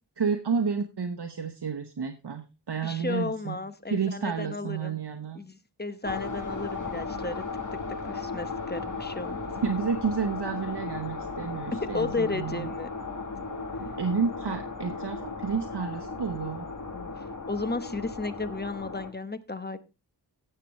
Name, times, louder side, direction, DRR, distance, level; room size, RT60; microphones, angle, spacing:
voice 1, 0.2-3.6 3.9-5.4 9.6-12.7 13.8-16.7, right 6 dB, 70° right, 1.0 m, -30 dB
voice 2, 2.8-5.0 5.3-7.4 8.0-9.4 11.9-12.9 16.9-19.8, left 3 dB, 25° left, 1.0 m, -34 dB
sound 1, 6.0-19.1, left 4 dB, 45° left, 1.7 m, -36 dB
17.0 x 6.8 x 3.0 m
wide cardioid pair, 55°, 42 cm